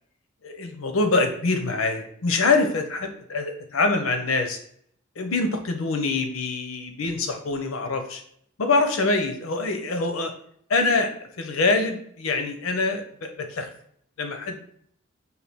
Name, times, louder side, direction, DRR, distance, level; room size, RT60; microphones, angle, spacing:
voice 1, 0.4-4.6 5.2-8.2 8.6-10.3 10.7-11.1 11.4-13.7 14.2-14.6, left 3 dB, 75° left, 6 dB, 0.6 m, -24 dB
4.3 x 2.2 x 3.4 m, 0.66 s
head